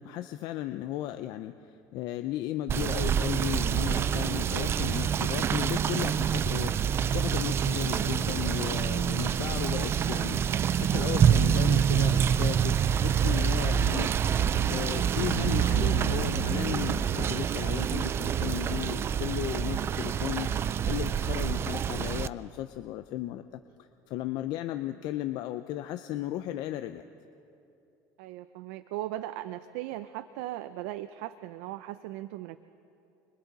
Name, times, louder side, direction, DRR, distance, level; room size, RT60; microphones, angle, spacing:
voice 1, 0.0-10.4 10.7-14.1 14.7-27.1, left 13 dB, 60° left, 9 dB, 0.6 m, -35 dB
Rain / Motor vehicle (road), 2.7-22.3, right 8 dB, 30° right, 0.4 m, -27 dB
voice 2, 17.2-17.6 28.2-32.6, right 14 dB, 85° right, 11 dB, 0.6 m, -38 dB
29.5 x 22.5 x 4.1 m, 2.8 s
cardioid pair, 130°, 8 cm